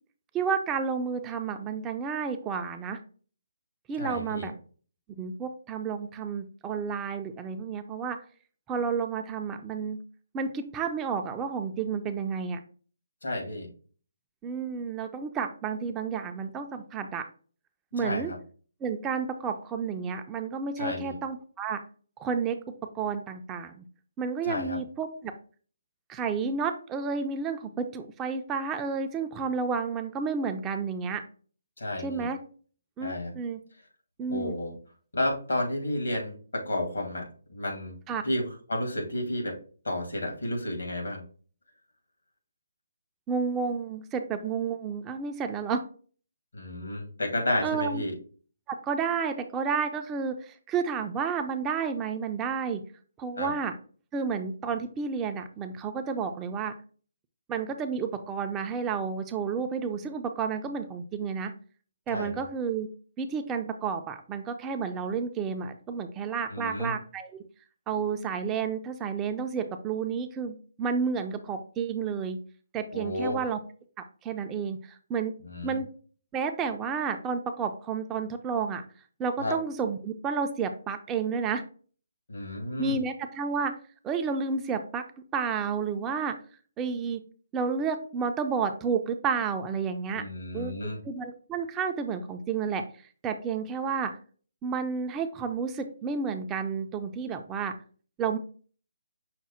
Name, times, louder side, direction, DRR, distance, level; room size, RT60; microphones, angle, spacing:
voice 1, 0.3-3.0 3.9-4.5 5.1-8.2 8.7-10.0 10.3-12.6 14.4-17.2 17.9-18.3 18.8-21.8 22.2-23.8 24.2-25.3 26.1-31.2 32.0-32.4 33.0-33.6 34.2-34.5 38.1-38.2 43.3-45.8 47.6-48.0 48.7-52.8 53.2-53.7 54.1-56.7 57.5-61.5 62.1-62.9 63.2-67.4 67.9-72.4 72.7-73.6 74.0-75.3 75.6-75.9 76.3-78.8 79.2-81.6 82.8-83.8 84.0-85.0 85.3-86.4 86.8-87.2 87.5-90.2 90.5-90.7 91.0-92.8 93.2-94.1 94.6-97.8 98.2-98.4, right 6 dB, 15° right, 7 dB, 0.4 m, -31 dB
voice 2, 4.0-4.5 13.2-13.7 18.0-18.4 20.8-21.2 24.4-24.8 31.8-32.3 33.0-33.3 34.3-34.7 35.1-38.0 38.2-39.6 39.8-41.2 46.5-48.2 53.4-53.5 62.1-62.4 66.5-66.9 72.9-73.4 75.4-75.8 79.4-79.6 82.3-83.0 90.1-91.0, left 1 dB, 90° left, 1 dB, 1.9 m, -31 dB
5.8 x 2.1 x 4.2 m, 0.41 s
hypercardioid pair, 155°, 0 cm